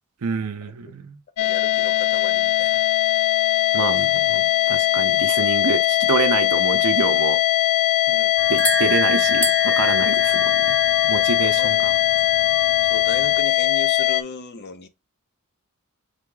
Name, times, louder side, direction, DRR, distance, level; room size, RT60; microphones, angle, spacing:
voice 1, 0.2-1.2 3.7-7.4 8.5-10.8 11.1-11.9, right 5 dB, 85° right, 0.6 m, -27 dB
sound 1, 1.4-14.2, left 14 dB, 90° left, 0.4 m, -20 dB
voice 2, 1.4-2.8 4.0-4.1 5.3-5.5 8.1-8.3 10.8-10.9 11.4-11.8 12.9-14.9, left 3 dB, 50° left, 0.6 m, -36 dB
sound 2, 8.4-13.4, right 1 dB, 5° left, 0.7 m, -30 dB
3.6 x 3.6 x 3.8 m
head